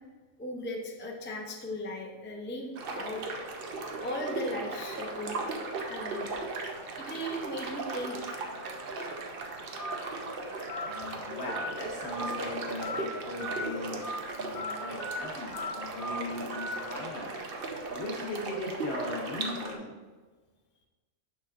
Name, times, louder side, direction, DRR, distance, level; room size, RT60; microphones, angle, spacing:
voice 1, 0.4-3.2 4.0-5.4 5.8-6.3 7.0-8.2, left 1 dB, 15° left, -1 dB, 0.4 m, -37 dB
sound 1, 2.8-19.8, right 3 dB, 50° right, 0.8 m, -37 dB
voice 2, 9.3-10.1 10.8-14.0 14.4-17.3 17.9-20.0, left 2 dB, 50° left, -1 dB, 1.3 m, -39 dB
Telephone, 9.8-10.0 10.7-10.8 11.5-11.7 12.2-12.4 12.8-13.0 13.4-13.6 14.0-14.2 14.5-14.7 15.0-15.2 15.5-15.7 16.0-16.2 16.5-16.7, left 1 dB, 80° left, 1.8 m, -36 dB
6.2 x 6.2 x 2.4 m, 1.3 s
omnidirectional pair, 1.5 m